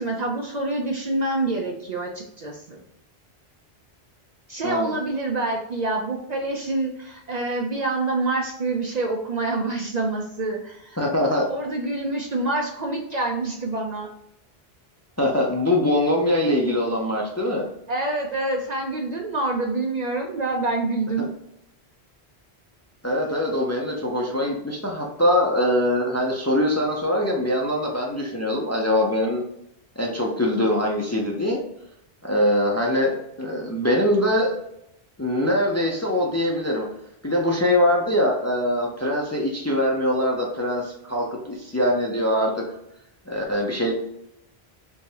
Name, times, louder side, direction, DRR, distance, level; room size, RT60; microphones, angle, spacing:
voice 1, 0.0-2.8 4.5-11.0 11.5-14.1 17.9-21.3, right 2 dB, 55° right, 2 dB, 0.5 m, -26 dB
voice 2, 11.0-11.5 15.2-17.7 21.2-21.3 23.0-29.4 30.0-31.6 32.2-34.5 35.2-36.9 37.2-42.6 43.3-43.9, left 1 dB, 20° left, -1 dB, 0.4 m, -23 dB
3.4 x 3.1 x 2.8 m, 0.79 s
omnidirectional pair, 1.1 m